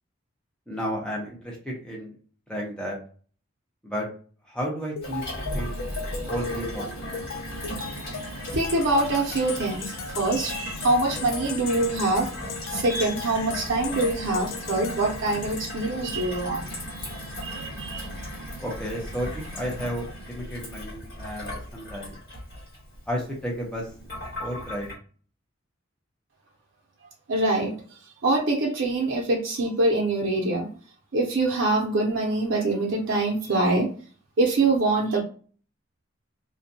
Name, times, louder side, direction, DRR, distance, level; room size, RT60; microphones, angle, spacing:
voice 1, 0.7-2.1 2.5-3.0 3.8-4.1 4.5-5.2 5.5-5.8 6.3-7.1 18.6-22.2 23.1-23.8 24.4-24.9, equal, 5° left, -3 dB, 0.7 m, -32 dB
sound 1, 5.0-15.6, left 6 dB, 80° left, 0.4 m, -38 dB
Gurgling / Water tap faucet / Sink (filling or washing), 5.0-24.9, equal, 50° left, 1.4 m, -37 dB
voice 2, 7.8-12.3 12.7-16.6 16.9-18.1 27.3-27.7 28.2-30.7 31.1-33.9 34.4-35.2, right 2 dB, 75° right, -1 dB, 0.6 m, -25 dB
2.5 x 2.3 x 2.6 m, 0.41 s
head